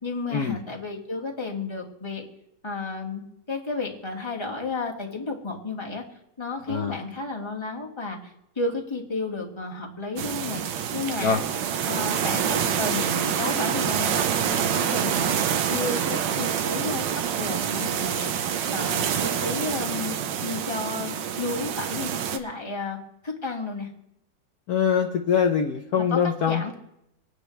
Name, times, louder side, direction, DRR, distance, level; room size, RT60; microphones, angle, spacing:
voice 1, 0.0-2.3 2.6-3.2 3.5-6.0 6.4-10.6 10.9-11.4 11.8-15.4 15.7-18.3 18.7-20.2 20.4-23.0 23.2-23.9 26.0-26.2 26.5-26.8, left 3 dB, 15° left, 1 dB, 1.8 m, -32 dB
voice 2, 6.7-7.0 11.2-11.4 24.7-26.6, left 7 dB, 60° left, 3 dB, 1.2 m, -23 dB
sound 1, 10.2-22.4, right 8 dB, 80° right, 1.5 m, -26 dB
26.0 x 9.5 x 3.3 m, 0.80 s
omnidirectional pair, 2.0 m